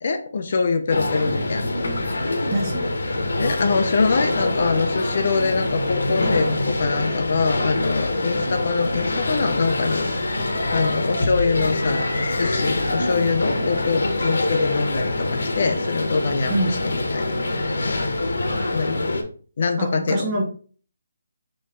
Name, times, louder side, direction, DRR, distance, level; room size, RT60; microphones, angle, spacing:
voice 1, 0.0-1.6 3.4-18.1 18.7-19.1 19.6-20.3, left 4 dB, 35° left, 6 dB, 0.6 m, -24 dB
sound 1, 0.9-19.2, left 2 dB, 75° left, 1.0 m, -24 dB
voice 2, 2.5-2.9 16.5-16.7 19.8-20.4, right 1 dB, 15° right, -2 dB, 0.8 m, -24 dB
4.4 x 3.1 x 3.5 m, 0.41 s
hypercardioid pair, 180°, 0 cm